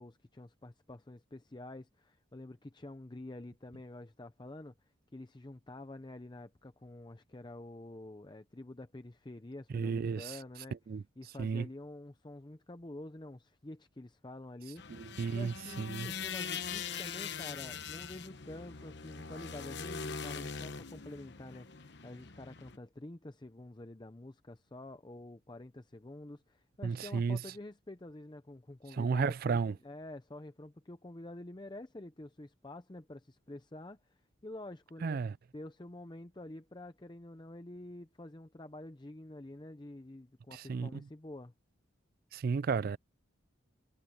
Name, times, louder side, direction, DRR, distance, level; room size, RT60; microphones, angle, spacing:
voice 1, 0.0-10.8 11.2-35.2 35.5-41.5, left 1 dB, 20° left, 0.6 m, -48 dB
voice 2, 9.7-10.3 10.9-11.0 11.4-11.7 14.9-16.1 26.8-27.4 28.9-29.7 35.0-35.3 40.5-41.0 42.3-43.0, right 5 dB, 45° right, 0.3 m, -33 dB
sound 1, 14.8-22.8, left 6 dB, 55° left, 1.0 m, -42 dB
head